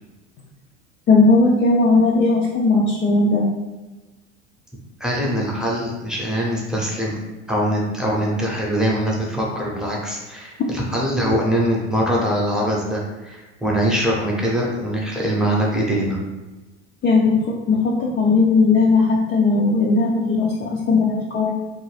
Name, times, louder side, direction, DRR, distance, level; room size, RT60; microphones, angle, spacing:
voice 1, 1.1-3.5 17.0-21.5, left 3 dB, 30° left, -3 dB, 0.4 m, -17 dB
voice 2, 5.0-7.2 7.5-16.2, equal, ahead, -4 dB, 0.8 m, -22 dB
2.6 x 2.2 x 3.2 m, 1.1 s
hypercardioid pair, 85°, 36 cm